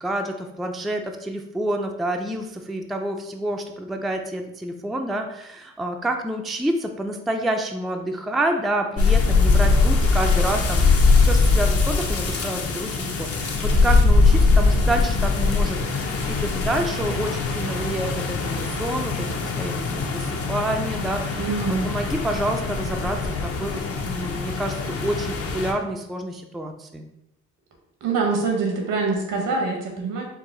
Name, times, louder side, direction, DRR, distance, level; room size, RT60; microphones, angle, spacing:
voice 1, 0.0-10.9 11.1-19.3 19.6-27.1, right 1 dB, ahead, 4 dB, 0.3 m, -28 dB
sound 1, 9.0-25.7, left 4 dB, 50° left, 0.7 m, -21 dB
voice 2, 21.3-21.9 28.0-30.3, right 4 dB, 90° right, 1 dB, 1.2 m, -24 dB
4.7 x 2.3 x 3.8 m, 0.83 s
cardioid pair, 90°, 30 cm